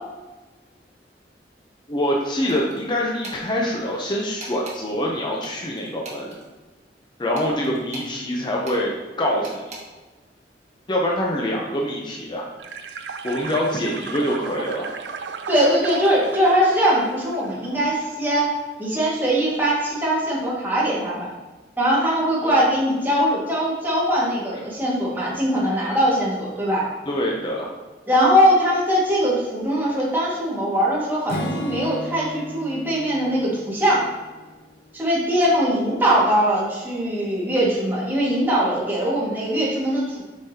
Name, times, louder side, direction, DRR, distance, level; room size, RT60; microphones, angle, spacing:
voice 1, 1.9-6.4 7.2-8.9 9.2-9.6 10.9-12.5 13.2-14.9 22.4-22.6 27.1-27.7, equal, 25° left, -2 dB, 0.7 m, -25 dB
sound 1, 2.5-2.8 3.2-3.4 4.4-4.8 5.4-6.4 7.3-8.1 8.6-8.8 9.4-9.8, right 2 dB, 40° right, 1.5 m, -39 dB
sound 2, 12.6-18.3, right 5 dB, 75° right, 0.4 m, -35 dB
voice 2, 15.5-18.5 18.8-21.3 21.8-26.8 28.1-34.0 34.9-40.2, equal, 10° right, -6 dB, 1.8 m, -21 dB
Acoustic guitar / Strum, 31.3-34.8, left 1 dB, 55° left, 0.8 m, -34 dB
7.1 x 5.2 x 2.8 m, 1.2 s
head